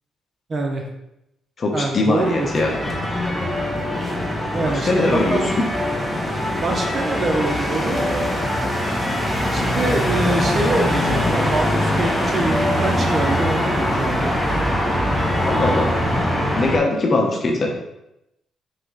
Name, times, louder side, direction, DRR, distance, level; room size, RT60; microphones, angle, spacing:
voice 1, 0.5-0.8 1.7-2.5 4.5-5.5 6.6-8.3 9.5-14.3, right 2 dB, 40° right, 2 dB, 0.6 m, -25 dB
voice 2, 1.6-2.7 4.6-5.4 15.4-15.9 16.5-17.7, left 2 dB, 40° left, 1 dB, 0.9 m, -21 dB
sound 1, 2.2-16.8, left 1 dB, 5° left, 0.8 m, -22 dB
4.0 x 2.9 x 3.8 m, 0.85 s
cardioid pair, 90°, 0 cm